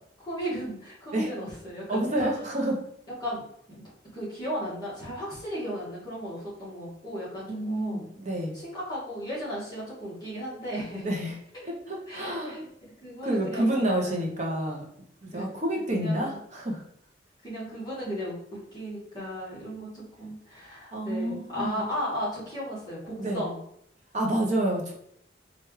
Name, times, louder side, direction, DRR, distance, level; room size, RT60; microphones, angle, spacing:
voice 1, 0.2-2.3 3.2-3.4 4.1-8.0 8.5-11.2 11.5-11.7 12.1-12.7 13.0-14.2 15.3-15.4 15.9-16.4 17.4-23.6, equal, 25° left, -8 dB, 1.6 m, -35 dB
voice 2, 1.9-2.8 7.5-8.5 11.0-11.3 11.6-12.6 13.2-14.8 15.2-16.8 20.9-21.8 23.2-23.4 24.1-24.9, right 1 dB, 40° right, 0 dB, 0.9 m, -28 dB
4.5 x 2.6 x 3.1 m, 0.70 s
head